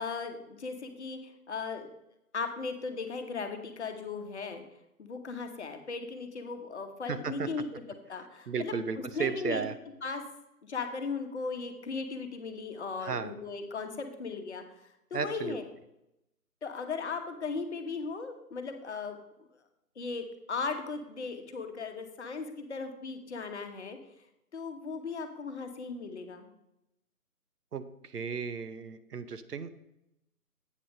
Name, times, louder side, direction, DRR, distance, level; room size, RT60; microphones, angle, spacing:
voice 1, 0.0-1.9 2.3-4.6 5.0-7.7 8.1-8.7 9.1-9.6 10.0-10.2 10.6-15.6 16.6-19.2 20.0-24.0 24.5-26.5, left 4 dB, 45° left, 6 dB, 1.1 m, -37 dB
voice 2, 7.1-7.5 8.5-9.8 13.0-13.3 15.1-15.6 27.7-29.7, right 5 dB, 80° right, 13 dB, 0.9 m, -34 dB
8.4 x 5.7 x 5.2 m, 0.86 s
figure-of-eight pair, 160°, 46 cm